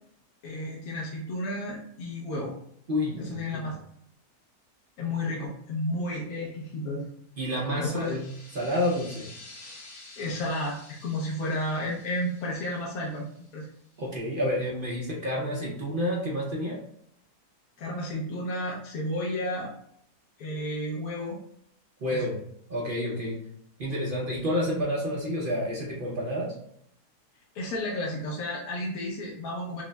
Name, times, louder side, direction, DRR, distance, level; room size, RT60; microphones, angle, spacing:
voice 1, 0.4-2.6 3.2-3.7 5.0-7.1 7.8-8.2 10.2-13.3 13.5-13.7 17.8-19.7 20.4-21.4 22.1-22.3 27.5-29.8, left 1 dB, 70° left, -3 dB, 1.1 m, -32 dB
voice 2, 2.9-3.6 7.4-8.2 8.5-9.3 14.0-16.8 22.0-22.3 22.7-23.4 23.8-26.6, left 1 dB, 55° right, -3 dB, 0.5 m, -29 dB
sound 1, 7.6-13.9, left 2 dB, 35° left, 0.6 m, -50 dB
5.9 x 2.0 x 2.2 m, 0.69 s
omnidirectional pair, 1.8 m